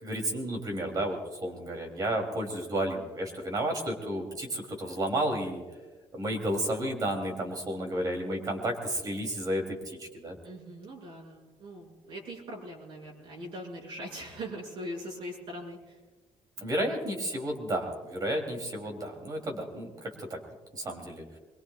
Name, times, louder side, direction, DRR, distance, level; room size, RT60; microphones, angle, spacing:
voice 1, 0.0-5.6 6.1-10.4 16.6-20.4 20.7-21.2, right 1 dB, 35° right, 2 dB, 3.3 m, -32 dB
voice 2, 10.4-16.0, equal, 55° right, -2 dB, 6.0 m, -41 dB
24.0 x 22.0 x 2.5 m, 1.4 s
cardioid pair, 150°, 11 cm